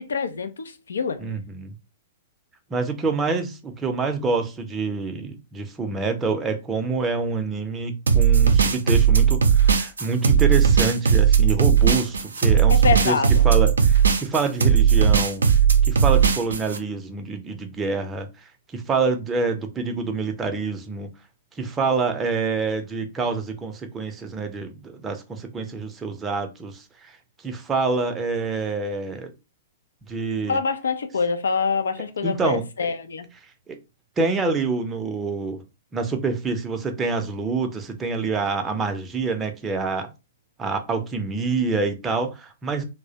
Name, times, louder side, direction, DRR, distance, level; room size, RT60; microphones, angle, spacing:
voice 1, 0.0-1.2 12.7-13.4 30.5-33.3, left 5 dB, 80° left, 0.4 m, -25 dB
voice 2, 1.2-1.7 2.7-13.2 13.4-15.4 15.9-18.3 18.7-21.1 21.6-27.1 27.4-29.3 30.1-30.6 32.2-32.9 33.7-33.8 34.2-35.6 35.9-40.1 40.6-42.8, right 4 dB, 20° right, 0.5 m, -26 dB
sound 1, 8.1-16.8, right 7 dB, 85° right, 0.4 m, -17 dB
2.2 x 2.0 x 2.7 m
hypercardioid pair, 120°, 0 cm